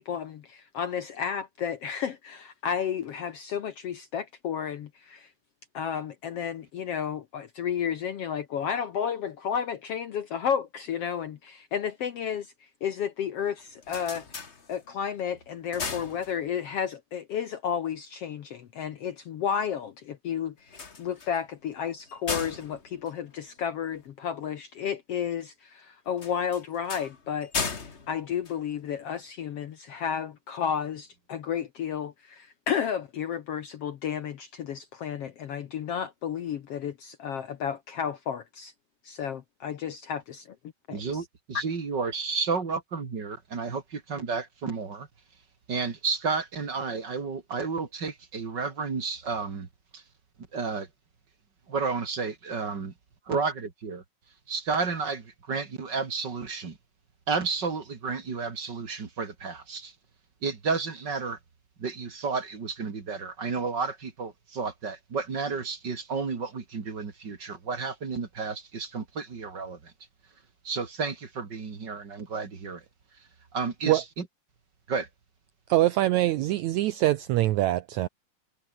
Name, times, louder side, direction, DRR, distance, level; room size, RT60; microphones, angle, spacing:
voice 1, 0.0-5.3 5.7-14.4 14.7-38.7 39.0-40.5 40.9-41.2 41.5-41.6, left 8 dB, 60° left, 1.7 m, -32 dB
sound 1, 13.6-15.1 15.5-16.8 20.6-24.1 26.1-29.2, left 4 dB, 30° left, 1.3 m, -37 dB
voice 2, 40.9-45.1 45.7-49.7 49.9-50.0 50.5-50.9 51.7-52.9 53.3-54.0 54.5-56.8 57.3-59.9 60.4-61.4 61.8-69.8 70.6-72.8 73.5-74.0 74.9-75.1, right 4 dB, 35° right, 2.7 m, -31 dB
voice 3, 75.7-78.1, right 15 dB, 75° right, 1.8 m, -24 dB
omnidirectional pair, 3.8 m